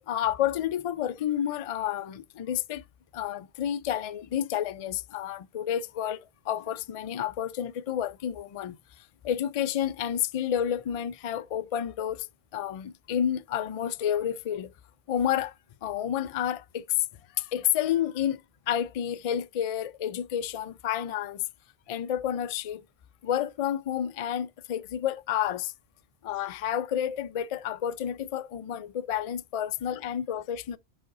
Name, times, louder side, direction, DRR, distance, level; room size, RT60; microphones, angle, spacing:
voice 1, 0.0-2.8 3.1-12.3 12.5-14.7 15.1-15.5 15.8-16.8 17.4-18.4 18.7-21.4 21.9-22.8 23.2-25.7 26.2-30.8, left 10 dB, 60° left, 0.3 m, -30 dB
5.7 x 5.0 x 3.9 m
omnidirectional pair, 1.2 m